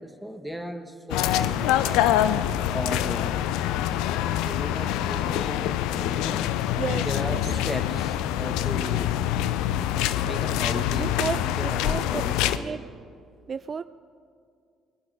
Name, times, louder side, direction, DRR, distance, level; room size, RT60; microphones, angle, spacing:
voice 1, 0.0-2.1 2.7-3.3 4.4-6.6 7.1-9.3 10.2-12.8, equal, 5° left, 7 dB, 1.6 m, -36 dB
sound 1, 1.1-12.6, left 12 dB, 70° left, 0.5 m, -25 dB
voice 2, 6.8-7.4 10.9-12.2 12.5-12.8 13.5-13.8, right 6 dB, 40° right, 14 dB, 0.3 m, -32 dB
21.0 x 11.5 x 5.0 m, 2.3 s
hypercardioid pair, 50°, 0 cm